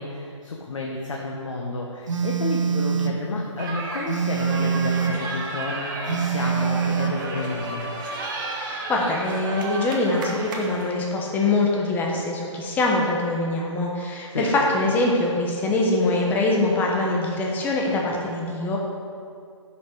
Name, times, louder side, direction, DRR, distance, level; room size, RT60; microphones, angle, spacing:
voice 1, 0.0-7.8 14.3-14.5, left 3 dB, 70° left, -1 dB, 1.2 m, -31 dB
Telephone, 2.1-3.2 4.1-5.2 6.1-7.2, right 7 dB, 75° right, 1.0 m, -24 dB
sound 1, 3.6-10.9, right 2 dB, 40° right, 1.3 m, -32 dB
voice 2, 8.5-18.8, left 2 dB, 10° left, -1 dB, 1.0 m, -23 dB
9.9 x 6.3 x 4.6 m, 2.3 s
figure-of-eight pair, 145°, 16 cm